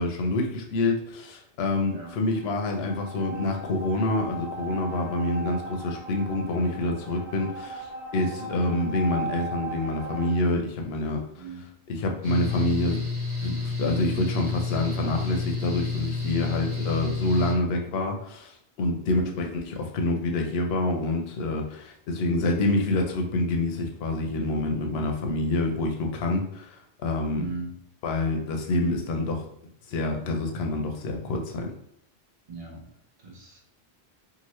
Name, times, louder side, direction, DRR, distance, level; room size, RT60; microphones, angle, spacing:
voice 1, 0.0-11.5 11.9-13.0 13.4-27.5 28.0-29.5 29.9-31.7, left 2 dB, 75° left, 2 dB, 0.8 m, -27 dB
sound 1, 2.2-10.3, right 3 dB, 20° right, 1.2 m, -38 dB
voice 2, 11.4-11.7 19.0-19.4 27.3-27.8 32.5-32.8 33.2-33.6, right 4 dB, 40° right, -2 dB, 0.8 m, -37 dB
Mechanical fan, 12.2-17.5, left 3 dB, 85° right, 1.2 m, -30 dB
2.8 x 2.5 x 3.0 m, 0.71 s
omnidirectional pair, 1.1 m